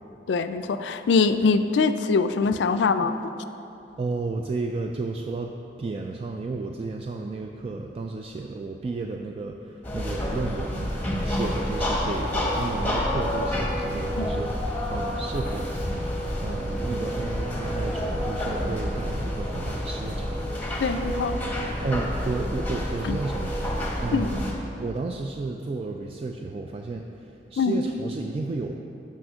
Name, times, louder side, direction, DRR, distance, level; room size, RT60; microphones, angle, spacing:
voice 1, 0.3-3.1 14.2-14.3 20.8-21.4 23.0-23.2 24.1-24.3 27.6-27.8, left 4 dB, 85° left, 10 dB, 0.4 m, -23 dB
voice 2, 4.0-11.0 11.2-15.8 16.4-20.5 21.8-23.6 24.0-24.4 24.8-28.8, right 3 dB, 35° right, 2 dB, 0.3 m, -32 dB
sound 1, 9.8-24.5, equal, 10° left, 1.1 m, -28 dB
6.1 x 5.8 x 6.2 m, 2.9 s
head